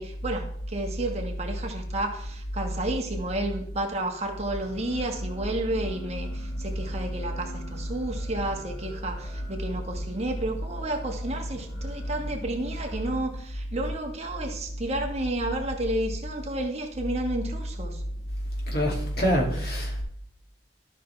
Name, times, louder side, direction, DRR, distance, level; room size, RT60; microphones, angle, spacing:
voice 1, 0.0-18.0, right 1 dB, 40° right, 1.4 m, -31 dB
sound 1, 4.6-13.2, left 1 dB, 25° left, 2.3 m, -46 dB
voice 2, 18.7-20.0, equal, 60° left, 2.3 m, -25 dB
12.5 x 6.0 x 3.3 m
head